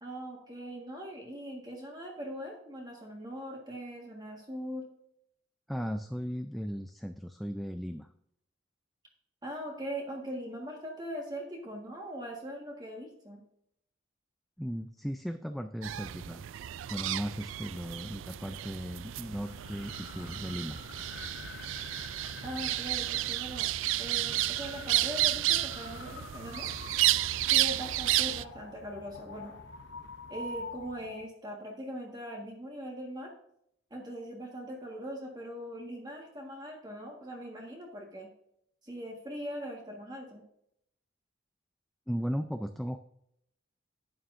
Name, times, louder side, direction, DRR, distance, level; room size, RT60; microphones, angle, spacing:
voice 1, 0.0-4.9 9.4-13.4 22.4-23.7 24.0-26.7 27.5-29.6 30.3-33.3 33.9-38.3 38.8-40.4, equal, 20° right, 0 dB, 1.6 m, -41 dB
voice 2, 5.7-8.1 14.6-16.5 16.9-20.8 42.1-43.1, equal, ahead, 6 dB, 0.3 m, -36 dB
sound 1, 15.8-28.4, right 15 dB, 75° right, 0.3 m, -32 dB
sound 2, 19.2-31.3, left 3 dB, 60° left, 0.7 m, -47 dB
11.5 x 8.8 x 2.6 m, 0.73 s
head